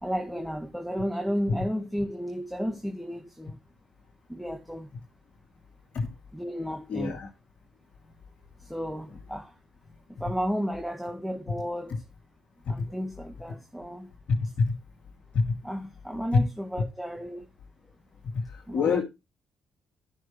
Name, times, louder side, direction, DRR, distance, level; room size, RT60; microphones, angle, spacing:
voice 1, 0.0-3.6 4.3-4.9 6.3-7.2 8.6-9.6 10.1-12.0 12.7-14.1 15.6-17.5 18.7-19.0, equal, ahead, 1.8 m, -33 dB
voice 2, 6.9-7.3 14.3-14.4 15.3-15.4 18.7-19.0, left 5 dB, 60° left, 2.7 m, -25 dB
14.0 x 6.2 x 3.1 m
hypercardioid pair, 50°, 2 cm